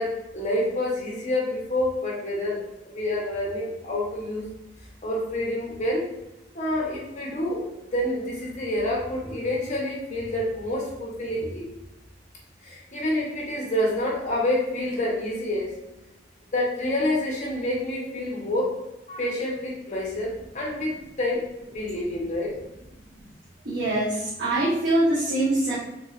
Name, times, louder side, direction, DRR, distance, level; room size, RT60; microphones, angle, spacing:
voice 1, 0.0-4.5 5.0-6.1 6.5-11.6 12.6-15.7 16.5-18.7 19.1-21.5 21.7-22.6, left 1 dB, 40° left, -3 dB, 1.0 m, -28 dB
voice 2, 23.6-25.8, right 1 dB, 65° right, -11 dB, 1.2 m, -23 dB
3.6 x 3.1 x 2.5 m, 0.96 s
head